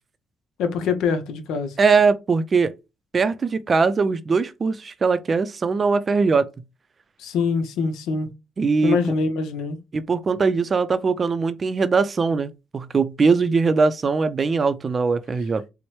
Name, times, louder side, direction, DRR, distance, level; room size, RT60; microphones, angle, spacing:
voice 1, 0.6-1.7 7.2-8.3 8.8-9.8, left 5 dB, 85° left, 0.6 m, -24 dB
voice 2, 1.8-2.7 3.1-6.5 8.6-9.0 9.9-15.6, right 4 dB, 40° right, 0.4 m, -21 dB
4.3 x 2.1 x 3.0 m
cardioid pair, 90°, 0 cm